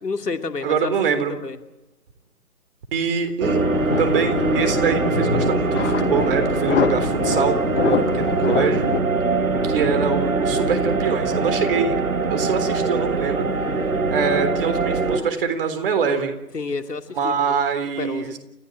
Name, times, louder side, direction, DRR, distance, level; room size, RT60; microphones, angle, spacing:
voice 1, 0.0-0.9 1.3-1.6 16.5-17.6 18.0-18.4, left 4 dB, 75° left, 7 dB, 2.7 m, -29 dB
voice 2, 0.6-1.3 2.9-3.6 4.0-8.9 9.6-12.0 12.3-13.5 14.1-16.3 17.2-18.4, right 6 dB, 35° right, 8 dB, 3.7 m, -24 dB
sound 1, 3.4-15.2, right 3 dB, 55° right, 4.3 m, -22 dB
sound 2, 3.7-9.0, left 7 dB, 45° left, 1.3 m, -26 dB
30.0 x 15.0 x 9.1 m, 0.94 s
figure-of-eight pair, 150°, 48 cm